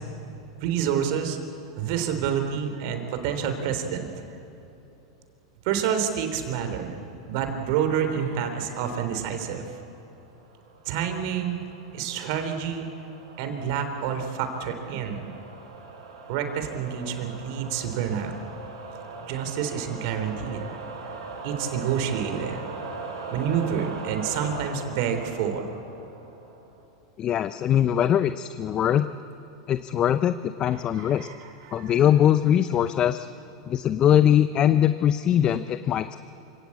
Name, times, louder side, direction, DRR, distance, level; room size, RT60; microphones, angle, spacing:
voice 1, 0.6-1.4 1.8-4.1 5.6-7.0 7.3-9.6 10.8-11.6 11.9-12.9 13.4-15.3 16.3-18.3 19.3-20.8 21.4-22.7 23.3-25.7 30.6-31.9, right 8 dB, 60° right, 6 dB, 3.4 m, -28 dB
sound 1, 10.3-26.8, right 4 dB, 80° right, 5.5 m, -40 dB
voice 2, 27.2-29.1 29.7-31.3 31.7-33.3 33.7-36.2, left 10 dB, 35° left, 12 dB, 0.7 m, -21 dB
27.0 x 17.0 x 8.5 m, 3.0 s
hypercardioid pair, 105°, 2 cm